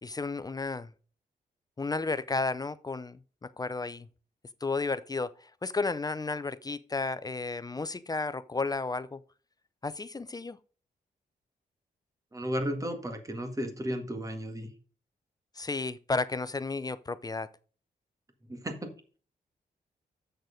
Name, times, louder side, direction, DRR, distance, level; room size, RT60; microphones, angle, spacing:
voice 1, 0.0-0.9 1.8-3.2 3.6-4.1 4.6-9.2 9.8-10.6 15.6-17.5, left 3 dB, 25° left, 0.5 m, -33 dB
voice 2, 12.3-14.7 18.5-18.9, equal, 20° right, 1.9 m, -34 dB
7.9 x 6.6 x 5.1 m
cardioid pair, 95°, 17 cm